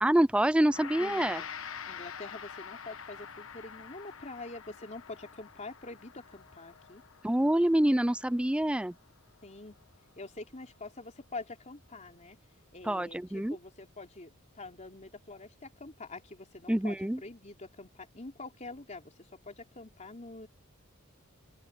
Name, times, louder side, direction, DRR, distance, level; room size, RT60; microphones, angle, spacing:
voice 1, 0.0-1.4 7.2-8.9 12.8-13.6 16.7-17.2, right 1 dB, 5° right, 0.4 m, -26 dB
Gong, 0.6-10.0, left 7 dB, 65° left, 1.2 m, -46 dB
voice 2, 1.0-1.5 1.8-7.0 9.4-9.8 10.2-12.4 12.7-19.1 19.5-20.5, left 3 dB, 35° left, 3.7 m, -45 dB
open air
head